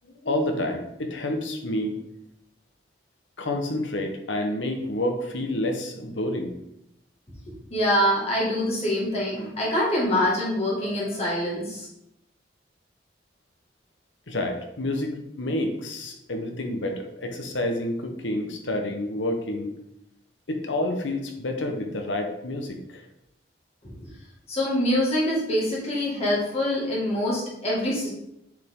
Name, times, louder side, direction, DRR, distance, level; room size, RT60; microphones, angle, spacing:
voice 1, 0.0-2.0 3.4-6.5 14.3-19.8 20.5-23.0, left 1 dB, 90° left, 4 dB, 1.2 m, -29 dB
voice 2, 7.7-11.9 23.8-23.9 24.5-28.1, left 1 dB, 35° left, -5 dB, 2.2 m, -25 dB
7.3 x 5.0 x 3.8 m, 0.81 s
head